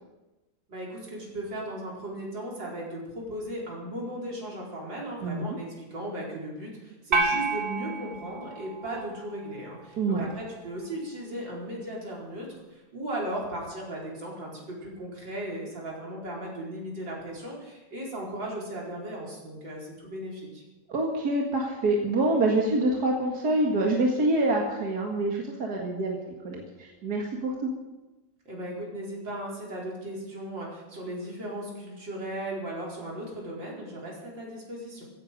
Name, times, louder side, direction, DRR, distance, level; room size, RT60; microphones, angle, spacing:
voice 1, 0.7-20.6 28.5-35.0, right 1 dB, 75° right, -4 dB, 5.3 m, -37 dB
sound 1, 7.1-9.6, right 3 dB, 40° right, 1.5 m, -30 dB
voice 2, 10.0-10.3 20.9-26.2 26.4-27.7, right 2 dB, 55° right, 0 dB, 2.3 m, -26 dB
16.0 x 16.0 x 5.3 m, 1.1 s
omnidirectional pair, 2.0 m